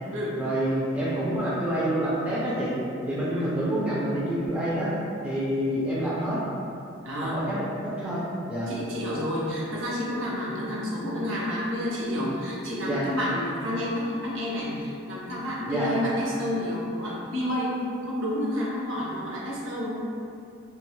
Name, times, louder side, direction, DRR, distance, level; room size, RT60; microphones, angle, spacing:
voice 1, 0.4-2.8 3.1-4.9 5.2-6.4 7.1-7.7 8.0-8.7 12.8-13.1 15.7-15.9, right 1 dB, 5° right, -9 dB, 0.4 m, -27 dB
voice 2, 7.0-7.5 8.7-19.9, left 1 dB, 65° right, -6 dB, 0.6 m, -30 dB
2.4 x 2.2 x 3.0 m, 2.6 s
head